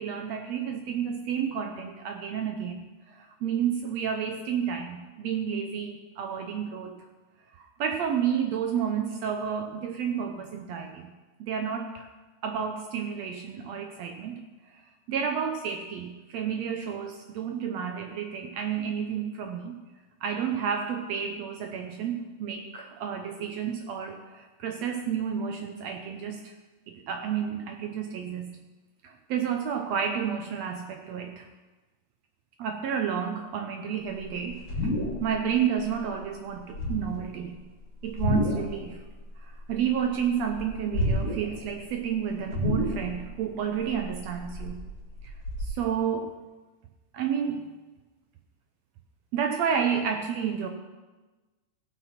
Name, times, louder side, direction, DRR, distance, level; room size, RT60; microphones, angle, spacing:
voice 1, 0.0-7.0 7.5-11.1 11.4-12.1 12.4-14.4 14.7-14.8 15.1-19.8 20.2-26.5 26.9-28.5 29.0-31.5 32.6-34.9 35.2-37.6 38.0-39.0 39.4-44.8 45.6-46.3 47.1-47.7 49.3-50.7, right 7 dB, 75° right, 4 dB, 1.6 m, -31 dB
sound 1, 34.1-35.5 35.8-36.1 36.6-37.3 38.0-38.8 39.1-40.1 40.4-41.6 41.9-42.0 42.5-43.3 43.7-45.7, left 1 dB, 40° left, 2.5 m, -30 dB
16.0 x 5.9 x 5.8 m, 1.2 s
omnidirectional pair, 3.6 m